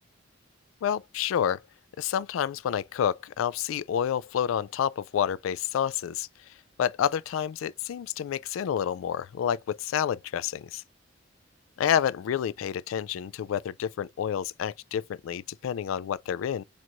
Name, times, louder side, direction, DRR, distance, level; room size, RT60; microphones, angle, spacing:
voice 1, 0.8-1.6 2.0-6.3 6.8-10.8 11.8-16.6, left 9 dB, 80° left, 0.3 m, -29 dB
4.4 x 2.5 x 2.9 m
head